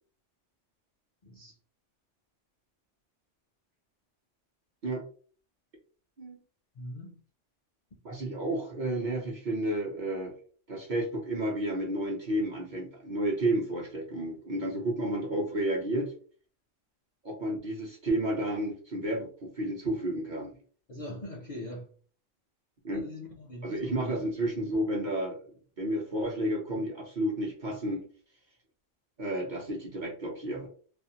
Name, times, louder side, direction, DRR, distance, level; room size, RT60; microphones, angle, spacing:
voice 1, 1.2-1.6 6.7-7.2 20.9-21.9 22.9-24.3, left 1 dB, 50° left, 0.5 m, -42 dB
voice 2, 8.0-10.3 10.7-16.1 17.2-20.5 22.8-23.0 23.6-25.4 25.8-28.0 29.2-30.7, right 1 dB, 45° right, 0.7 m, -31 dB
2.5 x 2.3 x 2.7 m
omnidirectional pair, 1.3 m